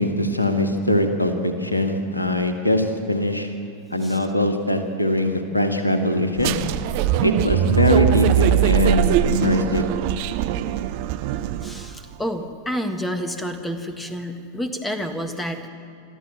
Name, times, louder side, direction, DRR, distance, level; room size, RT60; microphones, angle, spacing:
voice 1, 0.0-3.5 3.9-6.5 7.2-9.9, left 1 dB, 85° left, 6 dB, 1.7 m, -21 dB
sound 1, 6.4-12.0, right 11 dB, 45° right, 0.7 m, -21 dB
voice 2, 11.6-15.7, equal, 10° left, 7 dB, 1.6 m, -29 dB
28.0 x 13.0 x 7.5 m, 2.5 s
figure-of-eight pair, 90°, 0 cm